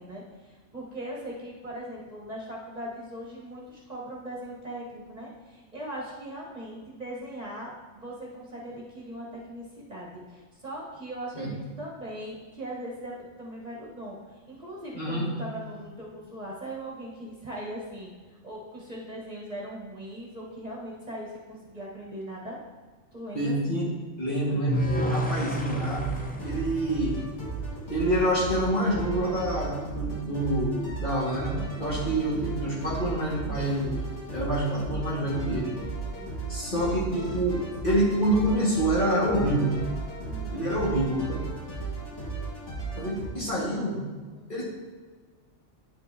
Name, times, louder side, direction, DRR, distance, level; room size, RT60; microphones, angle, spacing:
voice 1, 0.0-18.1 18.4-22.6 23.1-23.5 31.8-32.1 36.0-36.3 40.3-40.7 44.3-44.5, right 1 dB, 35° right, -4 dB, 1.3 m, -40 dB
voice 2, 14.9-15.3 23.3-23.9 24.2-26.1 26.4-27.2 27.9-34.0 34.3-35.7 36.5-39.7 40.5-41.4 43.0-44.0 44.5-44.6, right 1 dB, 45° left, -6 dB, 1.9 m, -27 dB
sound 1, 24.7-27.9, equal, 10° left, 0.4 m, -31 dB
sound 2, 25.5-43.3, right 4 dB, 70° left, 2.1 m, -35 dB
9.3 x 5.5 x 2.7 m, 1.4 s
omnidirectional pair, 1.3 m